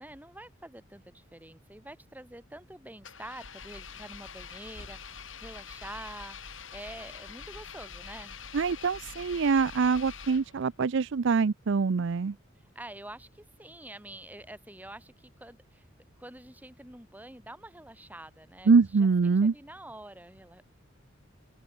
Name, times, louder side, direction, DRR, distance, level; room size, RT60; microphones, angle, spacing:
voice 1, 0.0-8.4 12.5-15.9 16.2-20.6, right 1 dB, 10° right, 3.4 m, -47 dB
Engine, 3.0-10.8, left 6 dB, 70° left, 6.1 m, -45 dB
voice 2, 8.5-12.3 18.7-19.5, right 5 dB, 65° right, 0.5 m, -24 dB
open air
head